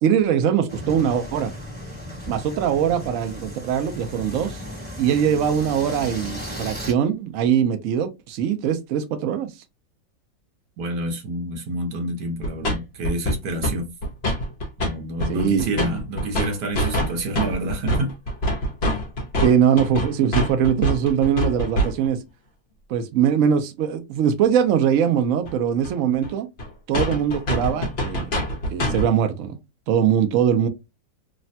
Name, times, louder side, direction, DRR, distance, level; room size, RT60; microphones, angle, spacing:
voice 1, 0.0-1.5 2.3-4.6 5.0-9.5 15.3-15.7 19.4-22.2 22.9-26.5 26.9-28.3 28.7-29.6 29.9-30.7, right 8 dB, 80° right, 0.7 m, -21 dB
sound 1, 0.7-6.9, equal, 20° right, 1.0 m, -35 dB
voice 2, 10.8-13.9 14.8-18.1, right 1 dB, 60° right, 1.2 m, -28 dB
sound 2, 12.4-12.8 13.0-13.8 14.0-14.9 15.2-22.1 25.4-25.5 25.8-25.9 26.2-26.3 26.6-26.7 26.9-29.1, equal, 50° left, 0.7 m, -24 dB
3.2 x 2.1 x 2.6 m
omnidirectional pair, 2.0 m